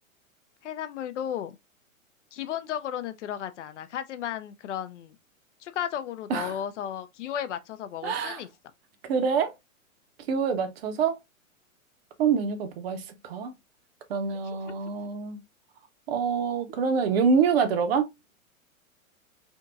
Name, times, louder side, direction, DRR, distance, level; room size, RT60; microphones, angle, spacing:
voice 1, 0.6-1.6 2.3-5.2 5.6-8.5, left 10 dB, 60° left, 0.5 m, -34 dB
voice 2, 8.0-8.4 9.0-9.5 10.3-11.2 12.2-13.5 14.1-15.4 16.1-18.1, right 6 dB, 45° right, 0.7 m, -26 dB
3.5 x 2.7 x 2.5 m
hypercardioid pair, 115°, 42 cm